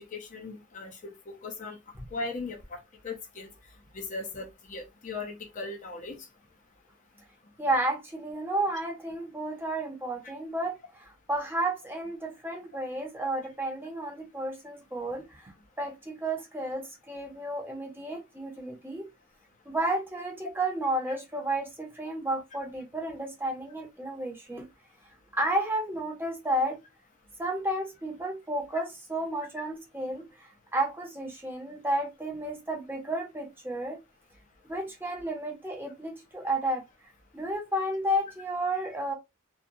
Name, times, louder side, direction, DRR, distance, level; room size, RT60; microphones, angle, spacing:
voice 1, 0.0-1.8 2.1-2.8 3.0-3.5 3.9-6.2, left 3 dB, 35° left, 0.5 m, -38 dB
voice 2, 7.6-15.5 15.8-19.1 19.7-24.7 25.3-26.8 27.4-34.0 34.6-36.9 37.3-39.1, right 1 dB, 10° right, 0.7 m, -32 dB
2.8 x 2.2 x 2.6 m
head